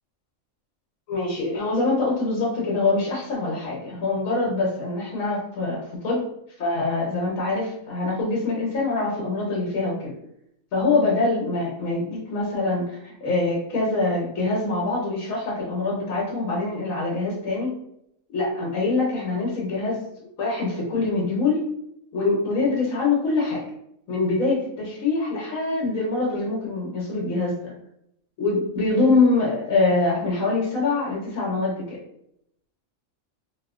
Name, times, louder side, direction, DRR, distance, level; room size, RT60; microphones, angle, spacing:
voice 1, 1.1-6.2 6.6-10.1 10.7-17.7 18.3-20.0 20.4-21.6 22.1-23.6 24.1-27.7 28.4-32.0, left 3 dB, 75° left, -4 dB, 1.3 m, -24 dB
3.0 x 2.1 x 3.5 m, 0.76 s
omnidirectional pair, 1.4 m